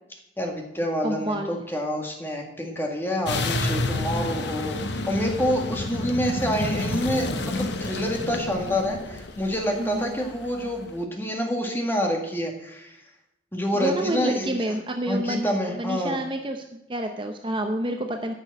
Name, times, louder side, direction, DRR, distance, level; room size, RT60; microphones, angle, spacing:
voice 1, 0.4-13.0 13.5-14.7 15.1-16.2, equal, 10° left, 1 dB, 1.7 m, -27 dB
voice 2, 1.0-1.6 9.8-10.2 13.7-18.3, right 1 dB, 25° right, 5 dB, 0.7 m, -29 dB
sound 1, 3.3-10.6, left 2 dB, 70° left, 1.0 m, -29 dB
10.0 x 6.2 x 8.1 m, 0.85 s
head